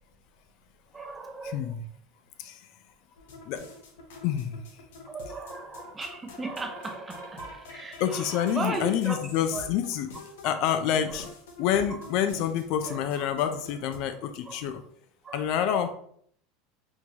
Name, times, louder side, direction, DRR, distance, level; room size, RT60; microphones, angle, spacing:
voice 1, 0.9-1.8 5.1-9.2 9.5-9.6 10.4-10.6 11.1-11.3 11.9-12.1 12.8-13.2 14.4-14.7 15.2-15.5 15.8-15.9, right 3 dB, 15° right, 4 dB, 0.5 m, -37 dB
voice 2, 1.4-1.9 2.4-2.6 3.5-3.6 4.2-4.6 8.0-10.1 10.4-11.3 11.6-14.8 15.3-15.9, left 9 dB, 60° left, 9 dB, 0.4 m, -27 dB
sound 1, 3.2-14.0, left 3 dB, 90° left, 0.8 m, -47 dB
4.5 x 2.3 x 2.8 m, 0.63 s
supercardioid pair, 135°, 0 cm